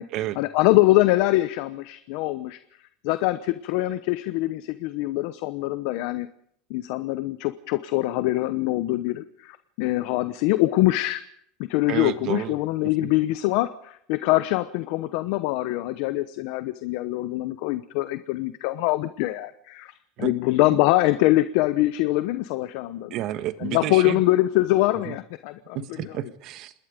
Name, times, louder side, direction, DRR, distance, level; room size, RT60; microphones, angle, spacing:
voice 1, 0.4-2.6 3.0-6.3 6.7-11.2 11.6-19.9 20.2-23.1 23.6-26.1, left 17 dB, 60° left, 12 dB, 0.9 m, -24 dB
voice 2, 11.9-12.5 20.2-20.3 23.1-24.2 25.7-26.7, right 13 dB, 45° right, 12 dB, 1.5 m, -30 dB
27.0 x 20.5 x 5.2 m, 0.69 s
supercardioid pair, 155°, 0 cm